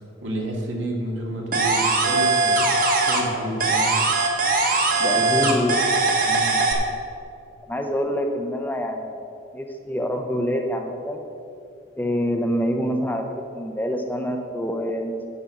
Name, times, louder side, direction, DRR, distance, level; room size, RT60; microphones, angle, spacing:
voice 1, 0.2-2.7 3.0-4.0 5.1-6.7, right 1 dB, 75° right, 0 dB, 2.0 m, -31 dB
sound 1, 1.5-3.3 3.6-6.7, right 3 dB, 45° right, 1.4 m, -20 dB
voice 2, 5.0-5.8 7.7-9.2 9.5-11.2 12.0-15.2, equal, 10° left, 3 dB, 0.6 m, -26 dB
10.5 x 6.2 x 7.2 m, 2.5 s
head